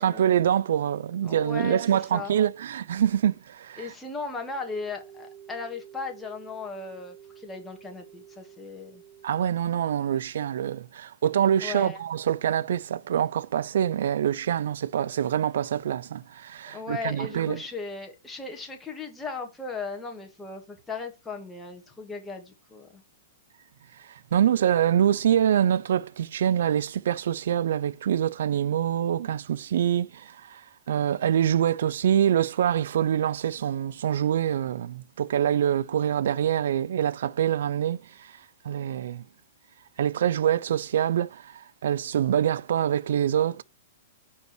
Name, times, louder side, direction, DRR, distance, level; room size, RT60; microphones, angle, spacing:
voice 1, 0.0-3.9 9.2-17.6 24.3-30.6 30.9-38.0 38.6-39.2 40.0-43.6, right 10 dB, 70° right, 0.3 m, -25 dB
voice 2, 1.2-2.3 3.8-9.0 11.6-12.0 16.7-23.0, left 4 dB, 10° left, 1.7 m, -37 dB
sound 1, 4.3-9.3, right 9 dB, 30° right, 1.4 m, -50 dB
5.3 x 4.6 x 4.6 m
hypercardioid pair, 125°, 0 cm